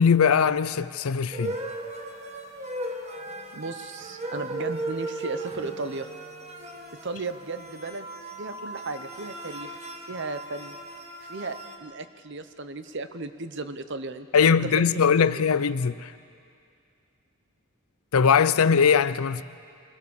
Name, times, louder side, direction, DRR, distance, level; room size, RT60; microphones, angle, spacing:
voice 1, 0.0-1.6 14.3-16.1 18.1-19.4, left 6 dB, 75° left, 0.5 m, -21 dB
sound 1, 1.3-11.8, right 2 dB, 30° right, 1.6 m, -37 dB
voice 2, 3.5-6.1 7.0-8.1 8.4-9.8 10.1-10.8 11.2-15.4, right 3 dB, 50° right, 0.8 m, -35 dB
24.0 x 16.5 x 7.1 m
head